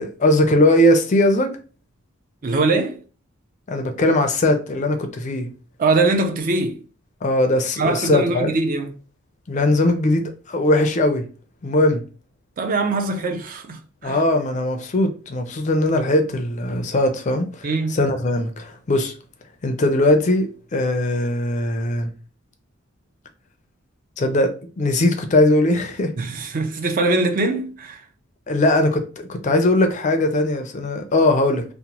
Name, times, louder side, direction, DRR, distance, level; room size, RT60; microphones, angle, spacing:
voice 1, 0.0-1.5 3.7-5.5 7.2-8.5 9.5-11.2 11.6-12.0 14.0-19.1 19.6-22.1 24.2-24.5 24.8-26.1 28.5-31.7, left 1 dB, 35° left, 0.4 m, -20 dB
voice 2, 2.4-3.0 5.8-6.8 7.8-8.9 12.6-14.2 17.6-18.0 26.2-28.0, right 3 dB, 40° right, 0.4 m, -22 dB
2.9 x 2.1 x 2.8 m
head